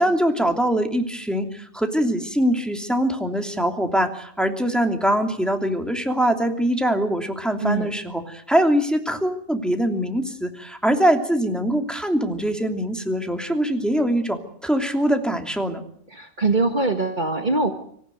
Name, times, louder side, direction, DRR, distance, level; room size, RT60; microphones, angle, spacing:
voice 1, 0.0-15.8, equal, ahead, 4 dB, 2.9 m, -23 dB
voice 2, 7.6-7.9 16.1-17.7, right 3 dB, 40° right, 5 dB, 1.8 m, -22 dB
26.0 x 15.5 x 9.2 m, 0.63 s
omnidirectional pair, 1.3 m